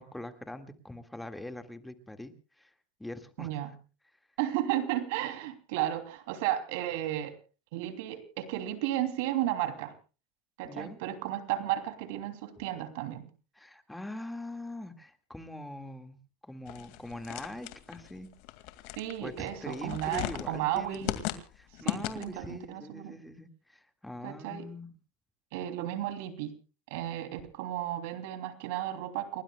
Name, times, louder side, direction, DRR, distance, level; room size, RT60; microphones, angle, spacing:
voice 1, 0.0-2.7 3.0-3.5 10.6-11.0 13.6-16.2 16.4-18.3 19.2-21.1 21.5-24.9, left 1 dB, 5° left, 7 dB, 2.0 m, -43 dB
voice 2, 3.4-3.7 4.4-7.4 7.7-9.9 10.6-13.3 19.0-21.2 21.8-23.1 24.2-24.7 25.5-26.5 26.9-29.4, right 13 dB, 75° right, 9 dB, 3.0 m, -33 dB
sound 1, 16.7-22.5, left 15 dB, 65° left, 2.2 m, -38 dB
30.0 x 19.5 x 2.3 m, 0.35 s
supercardioid pair, 120°, 0 cm